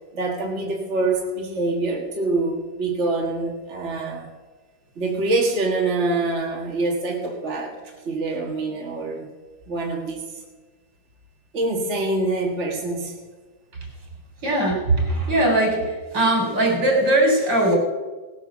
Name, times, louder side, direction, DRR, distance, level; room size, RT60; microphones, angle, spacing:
voice 1, 0.1-4.3 5.0-7.8 8.1-9.3 9.7-10.4 11.5-13.1, right 2 dB, 40° right, -1 dB, 2.0 m, -25 dB
voice 2, 14.4-17.8, right 1 dB, 70° right, 1 dB, 4.4 m, -20 dB
17.5 x 9.1 x 7.2 m, 1.3 s
omnidirectional pair, 2.0 m